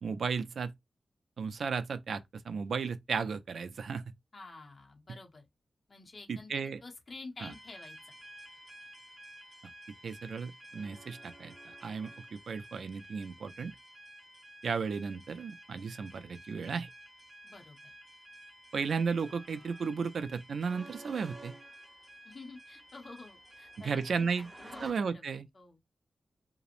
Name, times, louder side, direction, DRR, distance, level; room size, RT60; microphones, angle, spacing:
voice 1, 0.0-0.7 1.4-4.0 6.3-6.8 7.4-7.5 10.0-13.7 14.6-16.9 18.7-21.5 23.8-24.5 24.8-25.5, right 5 dB, 75° right, 0.3 m, -34 dB
voice 2, 4.3-5.4 5.9-8.1 17.4-17.9 22.2-25.8, left 3 dB, 40° left, 0.6 m, -50 dB
sound 1, 7.4-24.9, right 1 dB, 25° right, 1.1 m, -52 dB
2.9 x 2.0 x 2.4 m
wide cardioid pair, 140°, 0 cm